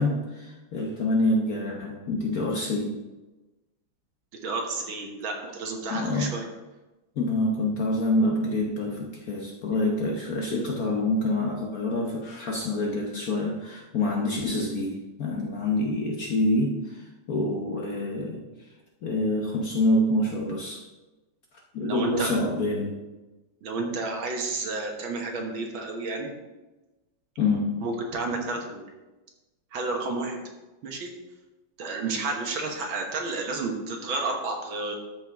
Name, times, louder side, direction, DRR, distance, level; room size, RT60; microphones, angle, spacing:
voice 1, 0.0-3.0 5.9-6.4 7.2-18.7 19.0-20.9 21.7-23.1 27.4-27.8, left 1 dB, 55° left, 0 dB, 1.1 m, -26 dB
voice 2, 4.4-6.5 21.8-22.4 23.6-26.3 27.8-28.9 29.7-30.4 30.8-31.1 31.8-35.0, right 3 dB, 65° right, 2 dB, 2.0 m, -31 dB
13.0 x 5.0 x 3.6 m, 1.1 s
omnidirectional pair, 2.4 m